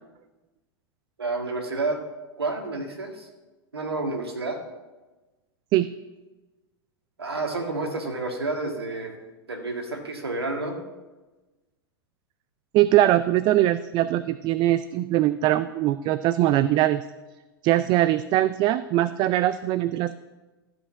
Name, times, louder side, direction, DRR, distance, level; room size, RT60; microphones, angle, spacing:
voice 1, 1.2-2.0 2.4-3.3 3.7-4.6 7.2-9.2 9.5-10.8, right 3 dB, 85° right, 4 dB, 1.8 m, -30 dB
voice 2, 12.7-17.0 17.6-20.2, right 14 dB, 35° right, 14 dB, 0.4 m, -21 dB
14.0 x 5.2 x 6.2 m, 1.2 s
figure-of-eight pair, 95°, 13 cm